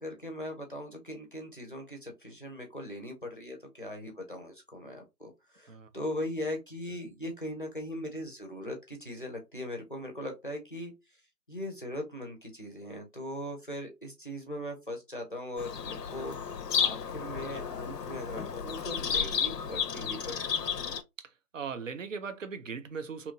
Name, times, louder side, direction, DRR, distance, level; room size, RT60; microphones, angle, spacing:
voice 1, 0.0-10.9 11.5-20.7, left 1 dB, 35° left, 0.5 m, -39 dB
Bird vocalization bird call bird song, 15.6-21.0, left 7 dB, 75° left, 0.6 m, -32 dB
voice 2, 21.2-23.3, right 5 dB, 55° right, 0.5 m, -39 dB
2.8 x 2.5 x 2.7 m
figure-of-eight pair, 150°, 49 cm